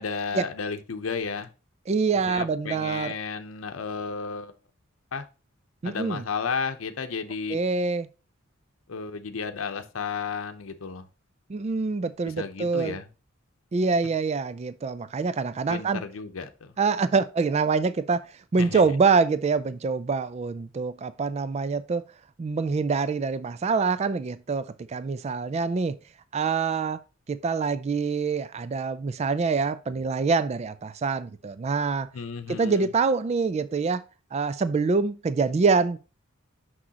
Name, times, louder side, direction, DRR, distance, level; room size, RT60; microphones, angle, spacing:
voice 1, 0.0-1.5 2.3-4.5 5.1-5.2 5.8-7.6 8.9-11.0 12.4-13.0 15.7-16.7 18.6-18.8 32.1-32.9, left 5 dB, 90° left, 0.7 m, -33 dB
voice 2, 1.9-3.2 5.8-6.2 7.5-8.1 11.5-13.0 13.7-16.0 16.8-18.2 18.5-22.0 22.4-26.0 26.3-27.0 27.3-32.1 32.5-34.0 34.3-36.0, right 4 dB, 30° right, 0.3 m, -25 dB
6.2 x 6.1 x 2.8 m
head